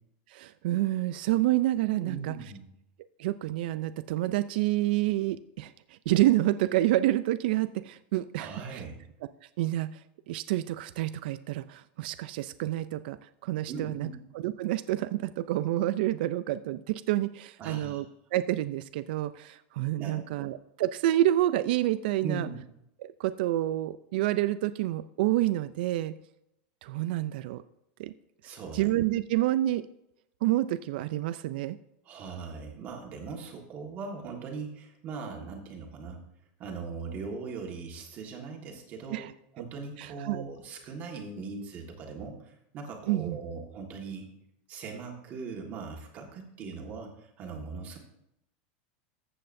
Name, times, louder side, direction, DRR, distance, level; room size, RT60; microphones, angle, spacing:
voice 1, 0.3-2.3 3.2-8.8 9.6-10.0 10.3-13.2 13.4-14.1 14.4-18.0 18.3-22.5 23.0-26.1 26.8-27.6 28.0-28.1 28.7-29.8 30.4-31.8 39.1-39.3 40.0-40.4 43.1-43.4, right 15 dB, 60° right, 12 dB, 0.3 m, -28 dB
voice 2, 2.0-2.7 8.4-9.0 13.7-14.1 17.6-18.0 20.0-20.5 22.2-22.6 28.4-28.9 32.0-36.2 36.6-39.2 39.5-44.3 44.7-48.0, right 4 dB, 30° right, 1 dB, 1.5 m, -40 dB
14.0 x 7.7 x 2.6 m, 0.81 s
supercardioid pair, 170°, 6 cm